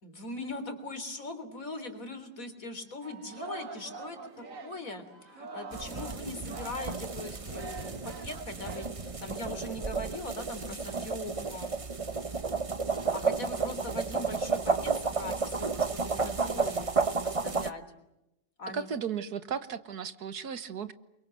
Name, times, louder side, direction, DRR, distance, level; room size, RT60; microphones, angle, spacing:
voice 1, 0.0-11.7 13.1-16.9 17.2-17.8 18.6-18.9, left 2 dB, 55° left, 9 dB, 4.0 m, -41 dB
Singing, 3.0-9.4, right 4 dB, 50° right, 2.1 m, -45 dB
sound 1, 5.7-17.7, right 4 dB, 25° right, 0.8 m, -32 dB
voice 2, 18.7-20.9, right 7 dB, 70° right, 12 dB, 1.8 m, -35 dB
29.0 x 23.5 x 7.8 m, 0.90 s
omnidirectional pair, 1.8 m